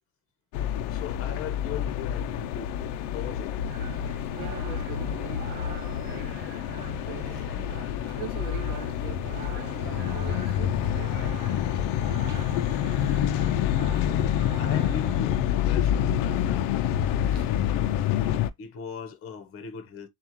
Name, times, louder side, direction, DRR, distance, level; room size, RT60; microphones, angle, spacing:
sound 1, 0.5-18.5, left 10 dB, 55° left, 0.6 m, -27 dB
voice 1, 0.9-3.6 4.2-4.3 13.6-14.2 14.6-17.6 18.6-20.1, left 7 dB, 30° left, 1.0 m, -40 dB
sound 2, 3.7-15.2, right 6 dB, 25° right, 0.7 m, -44 dB
voice 2, 4.3-6.3 6.9-7.3 7.6-7.7 8.2-11.6 17.3-17.5, right 12 dB, 55° right, 0.6 m, -42 dB
7.1 x 2.4 x 3.0 m
cardioid pair, 175°, 42 cm